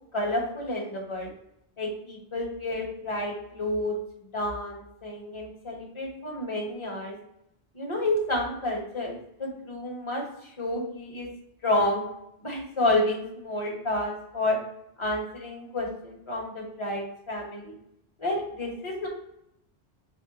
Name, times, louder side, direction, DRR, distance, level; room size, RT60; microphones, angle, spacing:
voice 1, 0.1-1.3 1.8-3.9 4.3-7.1 7.7-10.2 10.6-11.3 11.6-12.0 12.4-14.6 15.0-17.7 18.2-19.1, left 1 dB, 30° left, -1 dB, 1.1 m, -30 dB
6.2 x 2.2 x 2.8 m, 0.79 s
omnidirectional pair, 1.1 m